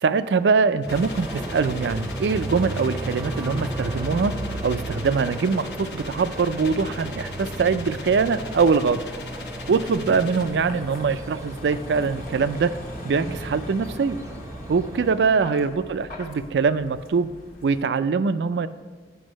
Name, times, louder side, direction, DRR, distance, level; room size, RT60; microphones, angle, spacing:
voice 1, 0.0-4.3 4.6-9.0 9.7-12.7 13.0-14.2 14.7-17.3 17.6-18.7, right 5 dB, 80° right, 14 dB, 0.4 m, -23 dB
sound 1, 0.8-10.6, left 5 dB, 75° left, 0.9 m, -42 dB
Vehicle, 0.9-17.8, left 1 dB, 50° left, 1.1 m, -42 dB
sound 2, 0.9-15.1, right 1 dB, 15° right, 0.5 m, -34 dB
8.0 x 5.3 x 6.3 m, 1.3 s
head